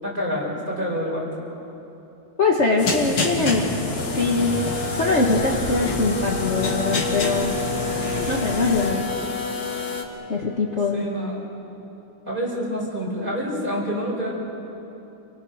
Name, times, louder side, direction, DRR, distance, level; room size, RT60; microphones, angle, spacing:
voice 1, 0.0-1.3 10.9-11.4 12.3-14.3, equal, 20° right, -3 dB, 5.9 m, -27 dB
voice 2, 2.4-3.7 4.1-4.6 4.9-7.5 8.3-9.0 10.3-11.0, left 3 dB, 35° left, -2 dB, 1.8 m, -22 dB
sound 1, 2.8-8.9, left 3 dB, 80° left, 3.2 m, -28 dB
sound 2, 4.0-10.0, left 3 dB, 55° left, 2.4 m, -29 dB
29.0 x 22.5 x 6.5 m, 3.0 s
omnidirectional pair, 2.3 m